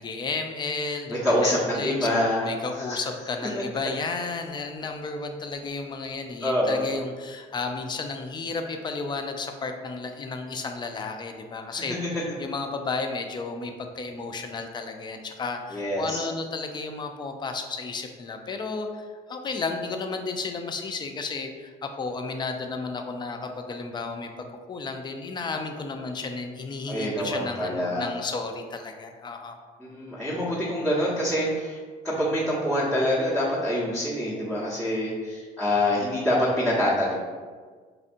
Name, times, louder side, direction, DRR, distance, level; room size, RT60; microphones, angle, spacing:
voice 1, 0.0-2.1 2.5-24.3 24.7-29.6, left 4 dB, 25° left, 5 dB, 0.4 m, -33 dB
voice 2, 1.1-2.5 2.7-3.0 3.5-3.6 6.4-6.9 11.7-11.8 15.7-16.2 26.9-28.1 29.8-37.1, left 1 dB, 5° left, -11 dB, 0.9 m, -26 dB
4.3 x 2.6 x 2.5 m, 1.5 s
cardioid pair, 110°, 17 cm